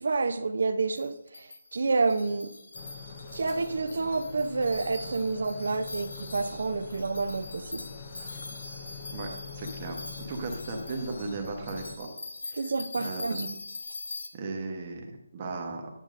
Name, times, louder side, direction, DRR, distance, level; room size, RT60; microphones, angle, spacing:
voice 1, 0.0-2.5 3.3-7.8 12.5-13.6, right 3 dB, 55° right, 11 dB, 0.6 m, -29 dB
sound 1, 0.9-14.3, left 3 dB, 90° left, 1.0 m, -43 dB
sound 2, 2.7-12.0, left 5 dB, 15° left, 0.4 m, -44 dB
voice 2, 9.5-10.0 10.3-12.1 12.5-12.7 13.0-13.4 14.3-15.9, right 3 dB, 20° right, 2 dB, 0.9 m, -36 dB
9.0 x 7.9 x 2.5 m, 0.82 s
hypercardioid pair, 175°, 0 cm